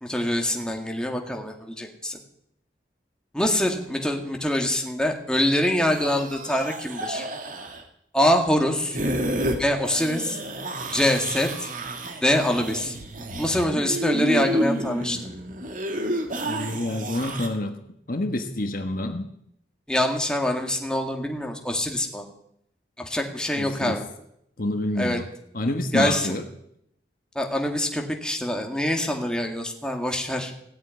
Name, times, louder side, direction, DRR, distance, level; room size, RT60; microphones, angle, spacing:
voice 1, 0.0-2.2 3.3-7.2 8.1-9.0 9.6-10.4 10.9-11.7 12.2-12.9 13.4-15.2 19.9-22.2 23.0-24.1 25.0-25.2 25.9-26.4 27.4-30.5, left 1 dB, 5° left, 2 dB, 2.0 m, -24 dB
sound 1, 5.9-7.8 8.9-9.6 9.9-17.5, right 1 dB, 50° right, 2.3 m, -30 dB
voice 2, 16.4-17.8 18.1-19.3 23.5-24.0 24.6-25.3 25.5-26.4, left 1 dB, 50° left, 6 dB, 1.4 m, -28 dB
17.0 x 8.3 x 9.6 m, 0.74 s
head